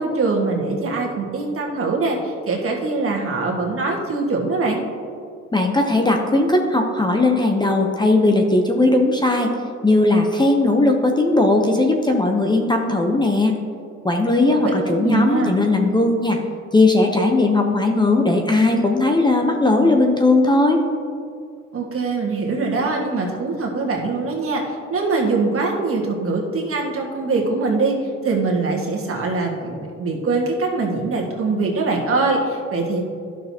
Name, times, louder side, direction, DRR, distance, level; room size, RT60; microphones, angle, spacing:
voice 1, 0.0-4.8 14.4-15.5 21.7-28.0 28.2-33.0, right 3 dB, 45° right, -1 dB, 1.6 m, -23 dB
voice 2, 5.5-9.5 9.8-13.5 14.0-16.4 16.7-20.8, left 2 dB, 15° left, 2 dB, 0.7 m, -18 dB
12.0 x 6.2 x 2.8 m, 2.4 s
cardioid pair, 90°, 30 cm